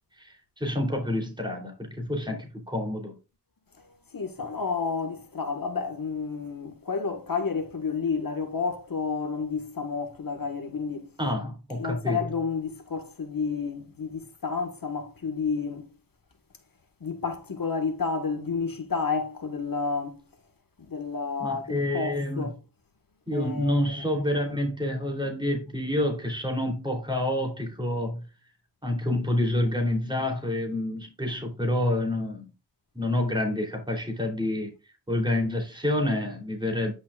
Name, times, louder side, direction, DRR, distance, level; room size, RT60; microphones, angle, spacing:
voice 1, 0.2-3.1 11.2-12.2 21.4-22.5 23.3-28.2 28.8-32.4 32.9-34.7 35.1-36.9, left 1 dB, 10° right, 3.1 m, -28 dB
voice 2, 4.1-11.1 11.8-15.9 17.0-20.2 20.8-22.6 23.3-24.0, left 5 dB, 50° left, 1.6 m, -30 dB
9.9 x 6.0 x 2.4 m
wide cardioid pair, 75°, 42 cm